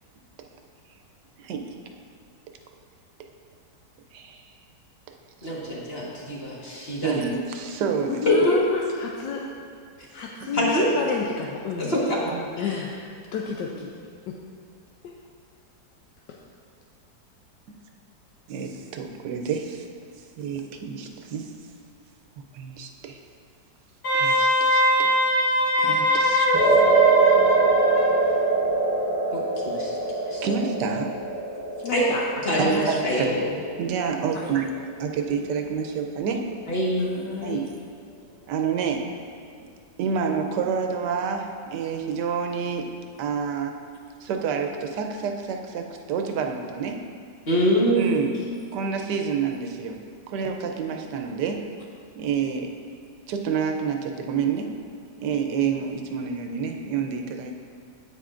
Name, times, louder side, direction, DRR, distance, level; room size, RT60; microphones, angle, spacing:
voice 1, 1.4-1.7 4.1-4.5 5.4-5.5 7.0-8.3 10.6-10.7 12.3-12.5 18.5-19.9 20.4-21.5 22.5-23.2 24.1-25.2 25.8-26.8 30.4-31.1 32.6-33.3 33.8-34.7 35.0-36.4 37.4-37.7 38.5-39.0 40.0-42.9 43.2-43.7 44.2-47.0 47.9-48.3 48.7-50.0 50.3-51.7 52.1-52.7 53.3-54.7 55.2-57.5, right 6 dB, 80° right, 4 dB, 1.3 m, -28 dB
voice 2, 5.4-7.2 8.2-8.6 10.2-10.9 11.8-12.2 12.6-12.8 29.3-29.4 29.6-29.9 30.3-30.4 31.8-32.1 32.4-33.4 36.7-37.3 47.5-48.3, equal, 35° left, -6 dB, 1.5 m, -24 dB
voice 3, 8.1-9.4 10.1-11.9 12.6-12.9 13.3-13.9 14.3-14.4 15.0-15.1 16.3-16.4 31.8-32.2 34.4-34.5 37.1-37.6, left 5 dB, 85° left, -1 dB, 1.3 m, -30 dB
Wind instrument woodwind instrument, 24.0-28.3, left 1 dB, 70° left, 2.0 m, -22 dB
sound 1, 26.5-34.9, right 4 dB, 10° right, 0.7 m, -23 dB
9.4 x 8.6 x 2.5 m, 2.3 s
omnidirectional pair, 1.8 m